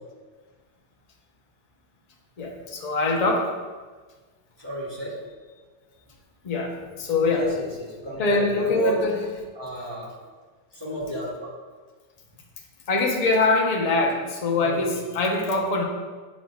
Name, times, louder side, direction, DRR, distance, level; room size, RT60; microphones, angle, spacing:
voice 1, 2.4-3.5 6.4-7.5 8.2-9.1 12.9-15.8, left 3 dB, 40° left, 0 dB, 0.8 m, -23 dB
voice 2, 4.6-5.2 7.3-9.0 9.5-10.1 10.7-11.5 14.6-15.0, right 1 dB, 20° right, -6 dB, 1.4 m, -31 dB
7.7 x 6.3 x 2.3 m, 1.4 s
omnidirectional pair, 1.2 m